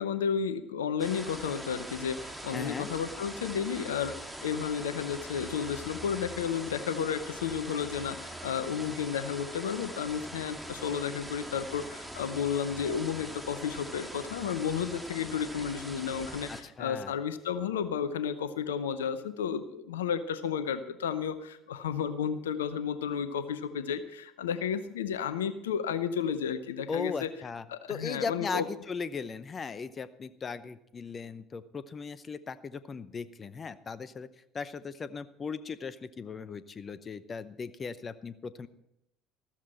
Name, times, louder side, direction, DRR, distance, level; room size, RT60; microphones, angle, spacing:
voice 1, 0.0-4.2 4.4-27.3 27.7-28.7, left 7 dB, 80° left, 13 dB, 0.8 m, -32 dB
sound 1, 1.0-16.6, right 1 dB, 5° right, 2.0 m, -43 dB
voice 2, 2.5-2.9 16.5-17.1 26.9-34.3 34.5-38.7, left 5 dB, 35° left, 15 dB, 0.7 m, -38 dB
14.0 x 13.5 x 4.3 m, 0.81 s
figure-of-eight pair, 60°, 0 cm